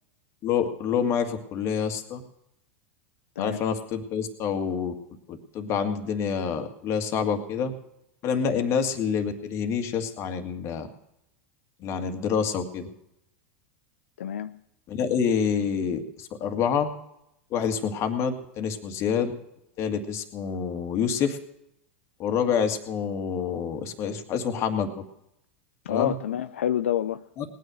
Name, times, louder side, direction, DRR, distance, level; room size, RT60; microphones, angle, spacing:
voice 1, 0.4-2.2 3.4-4.9 5.3-7.7 8.2-10.9 11.8-12.9 14.9-16.9 17.5-19.3 19.8-21.4 22.2-25.0 25.9-26.1 27.4-27.5, left 7 dB, 45° left, 6 dB, 2.0 m, -27 dB
voice 2, 14.2-14.6 25.9-27.2, left 10 dB, 85° left, 11 dB, 0.5 m, -28 dB
19.0 x 9.4 x 6.2 m, 0.82 s
hypercardioid pair, 105°, 7 cm